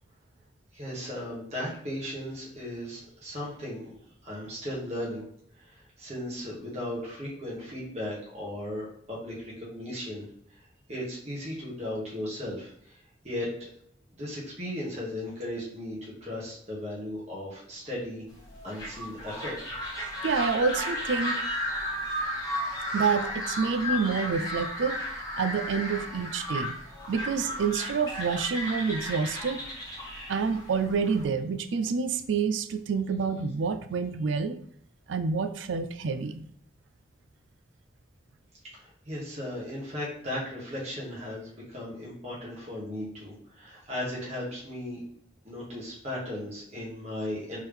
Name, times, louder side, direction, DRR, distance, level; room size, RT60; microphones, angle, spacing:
voice 1, 0.7-3.9 4.2-5.2 5.6-10.2 10.9-13.7 14.1-18.2 18.6-19.5 38.7-45.0 45.4-47.6, left 1 dB, 35° right, -6 dB, 1.7 m, -36 dB
sound 1, 18.4-31.2, left 1 dB, 20° left, 1.6 m, -34 dB
voice 2, 20.2-21.4 22.9-25.0 25.4-26.7 27.1-29.6 30.3-34.6 35.1-36.4, right 5 dB, 85° right, 10 dB, 0.4 m, -28 dB
4.4 x 3.5 x 3.4 m, 0.67 s
head